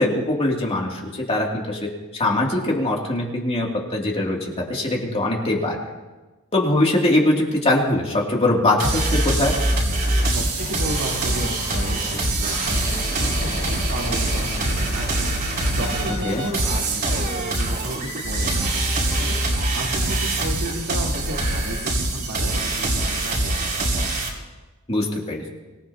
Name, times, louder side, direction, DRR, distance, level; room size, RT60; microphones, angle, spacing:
voice 1, 0.0-4.4 4.7-5.8 6.5-9.5 16.2-16.4 24.9-25.5, left 1 dB, 30° left, -2 dB, 2.8 m, -22 dB
Thrilled cream, 8.8-24.3, right 2 dB, 50° right, 4.3 m, -24 dB
voice 2, 10.3-24.1, right 1 dB, 75° right, -3 dB, 3.5 m, -34 dB
Hardstyle FL Studio Fail + Vital Test, 10.6-18.0, left 2 dB, 45° left, 3.9 m, -36 dB
25.0 x 18.5 x 2.9 m, 1.2 s
head